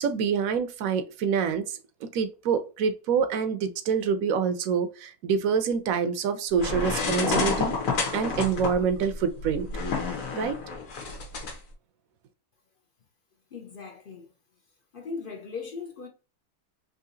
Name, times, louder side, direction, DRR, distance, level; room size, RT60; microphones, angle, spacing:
voice 1, 0.0-7.8 8.1-9.7 10.3-10.6, right 6 dB, 70° right, 1.0 m, -26 dB
sound 1, 6.6-11.5, left 4 dB, 75° left, 1.5 m, -29 dB
voice 2, 13.5-14.3 14.9-16.1, left 4 dB, 50° left, 0.6 m, -38 dB
3.7 x 2.7 x 2.6 m
omnidirectional pair, 1.6 m